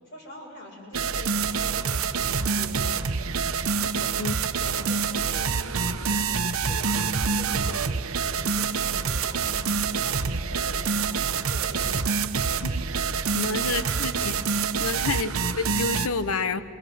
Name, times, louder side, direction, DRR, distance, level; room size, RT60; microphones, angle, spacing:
voice 1, 0.0-3.1 3.3-12.1 12.6-13.0 13.3-13.9 14.9-15.0, left 1 dB, 50° left, -2 dB, 7.4 m, -44 dB
sound 1, 0.9-16.1, right 5 dB, 70° right, 0.9 m, -26 dB
voice 2, 3.8-4.3 12.6-12.7 13.3-14.3 14.8-16.6, left 4 dB, 75° left, 12 dB, 1.1 m, -29 dB
27.5 x 20.5 x 7.8 m, 2.4 s
head